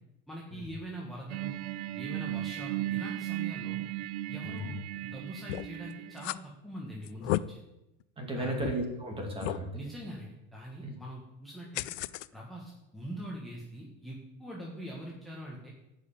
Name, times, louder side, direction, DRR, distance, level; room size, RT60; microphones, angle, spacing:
voice 1, 0.3-1.5 2.0-3.8 4.3-7.6 8.3-8.7 9.7-11.8 12.3-15.7, right 1 dB, ahead, -4 dB, 1.4 m, -43 dB
sound 1, 1.3-6.3, right 15 dB, 65° right, 0.7 m, -36 dB
sound 2, 5.5-5.8 6.2-6.4 7.0-7.4 8.0-8.1 8.6-8.7 9.4-9.6 11.7-12.3, left 18 dB, 85° left, 0.5 m, -32 dB
voice 2, 8.2-9.8 10.8-10.9, right 1 dB, 15° right, 2 dB, 2.2 m, -35 dB
11.0 x 5.6 x 8.9 m, 0.92 s
cardioid pair, 165°, 35 cm